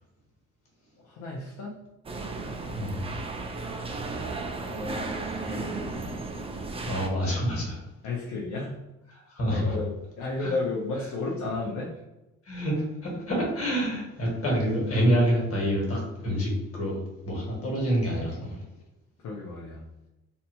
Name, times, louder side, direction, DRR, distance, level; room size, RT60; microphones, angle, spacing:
voice 1, 1.0-1.7 4.7-5.2 5.4-6.2 8.0-8.7 9.5-11.9 19.2-19.8, left 3 dB, 70° left, -2 dB, 0.6 m, -33 dB
sound 1, 2.0-7.1, right 3 dB, 20° right, 0.3 m, -34 dB
voice 2, 6.8-7.8 9.3-9.7 10.4-10.5 12.5-12.8 13.0-17.0 17.2-18.6, equal, 50° left, -2 dB, 1.3 m, -27 dB
2.6 x 2.2 x 2.8 m, 0.96 s
cardioid pair, 90°, 30 cm